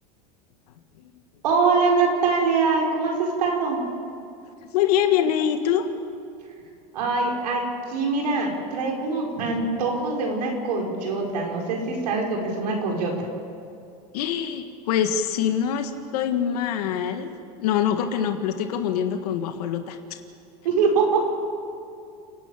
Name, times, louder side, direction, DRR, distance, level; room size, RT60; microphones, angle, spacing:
voice 1, 1.4-3.8 6.9-7.6 7.9-13.3 20.6-21.2, right 4 dB, 90° right, 0 dB, 5.2 m, -23 dB
voice 2, 4.6-5.9 14.1-20.0, left 9 dB, 80° left, 7 dB, 1.6 m, -24 dB
29.5 x 10.5 x 8.5 m, 2.6 s
supercardioid pair, 125°, 20 cm